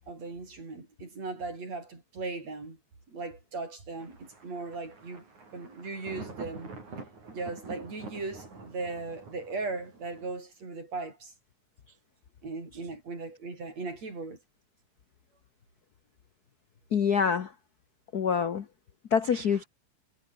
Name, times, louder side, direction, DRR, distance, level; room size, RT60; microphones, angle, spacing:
voice 1, 0.1-2.8 3.1-5.3 5.5-6.7 7.3-11.3 12.4-14.4 19.3-19.4, right 3 dB, 60° right, 8.2 m, -38 dB
Thunder, 4.0-10.4, right 3 dB, 75° right, 8.8 m, -46 dB
voice 2, 16.9-17.5 18.1-18.6 19.1-19.6, left 7 dB, 65° left, 0.9 m, -25 dB
omnidirectional pair, 3.4 m